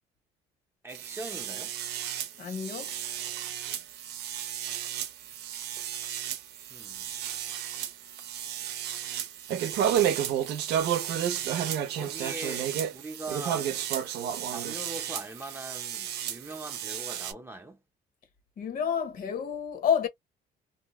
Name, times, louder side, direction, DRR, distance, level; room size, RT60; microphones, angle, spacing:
voice 1, 0.8-1.7 5.3-6.0 6.7-7.5 11.9-13.7 14.5-17.8, right 2 dB, 15° right, 0.6 m, -42 dB
sound 1, 0.9-17.3, right 10 dB, 75° right, 0.6 m, -32 dB
voice 2, 2.4-2.9 18.6-20.1, left 7 dB, 55° left, 0.9 m, -29 dB
2.7 x 2.1 x 3.0 m
cardioid pair, 110°, 17 cm